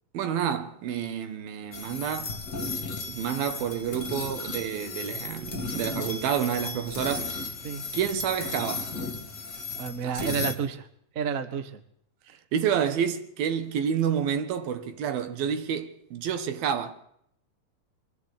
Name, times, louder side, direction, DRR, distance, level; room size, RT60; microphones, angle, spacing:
voice 1, 0.1-2.3 3.1-7.4 7.9-8.9 10.0-10.3 12.5-16.9, right 8 dB, 85° right, 3.4 m, -29 dB
sound 1, 1.7-10.6, left 4 dB, 40° left, 1.8 m, -35 dB
voice 2, 9.8-10.9 11.1-11.8, right 6 dB, 60° right, 0.8 m, -30 dB
24.0 x 14.5 x 8.5 m
omnidirectional pair, 4.1 m